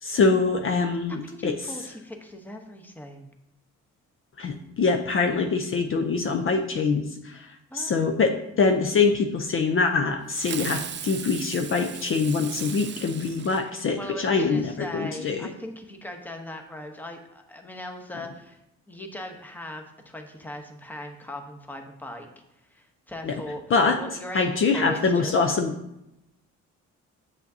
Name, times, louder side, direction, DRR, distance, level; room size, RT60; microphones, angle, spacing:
voice 1, 0.0-1.9 4.4-15.5 23.2-23.4 23.7-24.0 24.3-25.7, left 4 dB, 45° left, 5 dB, 0.6 m, -24 dB
voice 2, 1.2-3.3 7.7-8.1 13.9-18.6 18.9-22.3 22.7-23.6 24.0-25.3, left 1 dB, 5° left, 3 dB, 0.9 m, -39 dB
Fireworks, 10.3-14.2, right 9 dB, 40° right, 0.4 m, -37 dB
7.2 x 6.8 x 2.7 m, 0.86 s
cardioid pair, 90°, 30 cm